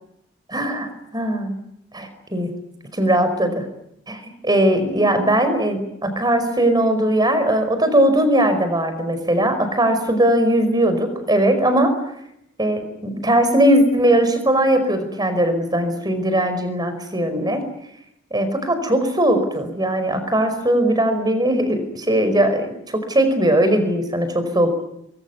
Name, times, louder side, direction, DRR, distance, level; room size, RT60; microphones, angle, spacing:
voice 1, 0.5-1.6 1.9-2.5 2.9-3.6 4.1-11.9 12.6-17.6 18.3-24.7, right 1 dB, 20° right, 9 dB, 5.1 m, -19 dB
24.5 x 23.0 x 9.5 m, 0.78 s
head